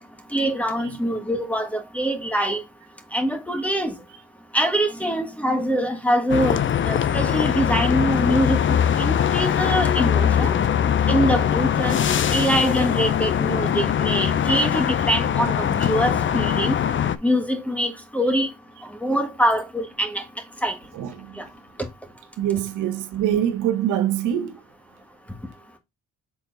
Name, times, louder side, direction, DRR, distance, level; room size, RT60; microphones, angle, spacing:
voice 1, 0.3-2.6 3.1-3.9 4.5-6.6 6.9-10.5 11.1-12.0 12.3-16.8 17.2-18.5 19.0-20.2 20.6-20.7, equal, 5° left, 1.6 m, -24 dB
sound 1, 6.3-17.2, left 9 dB, 40° left, 0.6 m, -21 dB
voice 2, 20.9-21.3 22.4-24.6, right 10 dB, 85° right, 1.1 m, -24 dB
6.2 x 4.0 x 3.9 m
cardioid pair, 90°, 30 cm